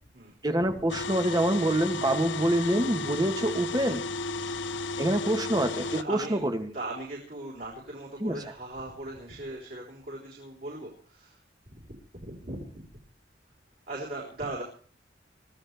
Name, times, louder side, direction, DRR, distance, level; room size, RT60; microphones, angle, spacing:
voice 1, 0.4-4.1 5.0-6.7 8.2-8.3, right 1 dB, 20° right, 8 dB, 1.3 m, -26 dB
sound 1, 0.9-6.0, left 3 dB, 85° left, 0.7 m, -34 dB
voice 2, 6.0-6.4 6.7-11.4 11.7-11.8 12.1-12.7 13.9-14.6, right 2 dB, 50° right, -4 dB, 4.2 m, -38 dB
23.5 x 14.5 x 3.4 m, 0.44 s
head